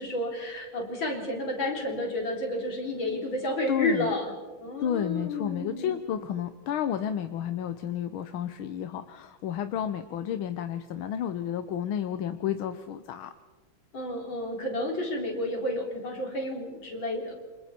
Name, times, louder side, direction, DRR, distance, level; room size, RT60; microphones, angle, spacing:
voice 1, 0.0-4.3 4.6-6.0 13.9-17.3, left 1 dB, 70° left, 1 dB, 4.6 m, -31 dB
voice 2, 3.7-4.1 4.8-13.3, left 9 dB, 90° left, 10 dB, 1.7 m, -31 dB
28.5 x 27.0 x 4.4 m, 1.2 s
omnidirectional pair, 2.2 m